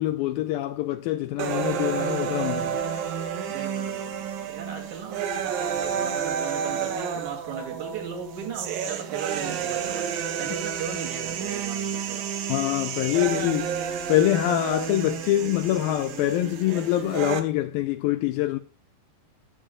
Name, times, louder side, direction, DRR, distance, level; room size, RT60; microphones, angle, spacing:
voice 1, 0.0-2.8 12.5-18.6, left 14 dB, 80° left, 2.2 m, -25 dB
sound 1, 1.4-17.4, right 8 dB, 65° right, 2.8 m, -30 dB
voice 2, 3.5-10.1 10.4-12.3, right 6 dB, 50° right, 3.8 m, -37 dB
19.5 x 7.4 x 2.4 m
omnidirectional pair, 4.8 m